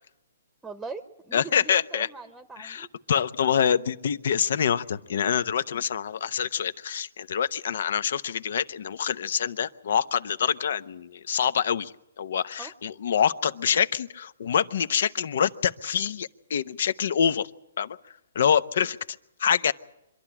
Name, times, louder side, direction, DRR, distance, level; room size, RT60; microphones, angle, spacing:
voice 1, 0.6-2.9 12.6-12.7, right 4 dB, 5° right, 1.0 m, -41 dB
voice 2, 1.3-2.1 2.6-17.5 17.8-18.0 18.3-19.0 19.4-19.7, left 8 dB, 65° left, 0.8 m, -26 dB
25.0 x 12.0 x 9.9 m
hypercardioid pair, 150°, 0 cm